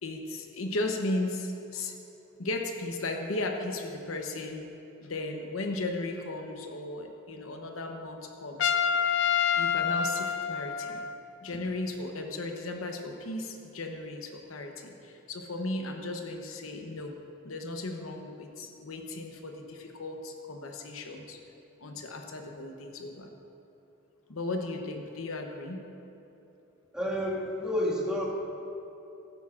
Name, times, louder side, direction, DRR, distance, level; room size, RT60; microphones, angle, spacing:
voice 1, 0.0-1.9 2.4-4.7 5.0-8.7 9.5-11.0 11.4-17.1 17.4-21.4 21.8-23.3 24.3-25.8, left 2 dB, 90° left, 3 dB, 0.9 m, -36 dB
Trumpet, 8.6-11.3, left 7 dB, 60° left, 0.5 m, -27 dB
voice 2, 26.9-28.3, left 1 dB, 5° right, -7 dB, 1.9 m, -30 dB
15.5 x 12.0 x 2.5 m, 3.0 s
head